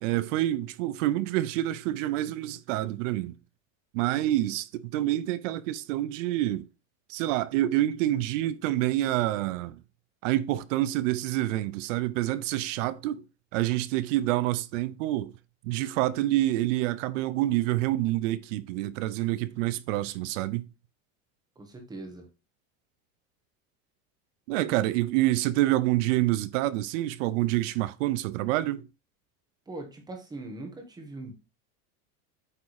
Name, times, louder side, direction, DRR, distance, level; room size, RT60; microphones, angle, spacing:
voice 1, 0.0-3.3 3.9-6.7 7.1-9.8 10.2-13.2 13.5-15.3 15.6-20.7 24.5-28.8, right 15 dB, 70° right, 0.7 m, -27 dB
voice 2, 21.6-22.3 29.7-31.3, right 2 dB, 10° right, 1.4 m, -41 dB
8.4 x 3.6 x 4.8 m
cardioid pair, 175°, 39 cm